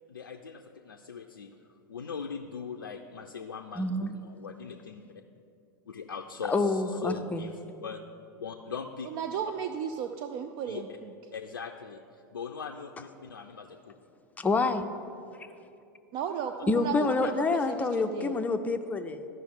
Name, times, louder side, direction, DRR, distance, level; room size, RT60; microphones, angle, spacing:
voice 1, 0.1-1.5 1.9-3.9 4.1-5.0 5.9-7.6 7.8-8.0 8.4-9.1 10.7-10.8 11.3-13.9 17.2-17.3, left 6 dB, 85° left, 3 dB, 0.4 m, -40 dB
voice 2, 3.8-4.1 6.5-7.4 14.4-14.9 16.7-19.3, left 3 dB, 15° left, 7 dB, 0.5 m, -27 dB
voice 3, 9.0-11.1 16.1-17.9 18.1-18.4, right 7 dB, 45° right, 7 dB, 0.4 m, -34 dB
13.0 x 5.5 x 3.7 m, 2.7 s
figure-of-eight pair, 90°, 11 cm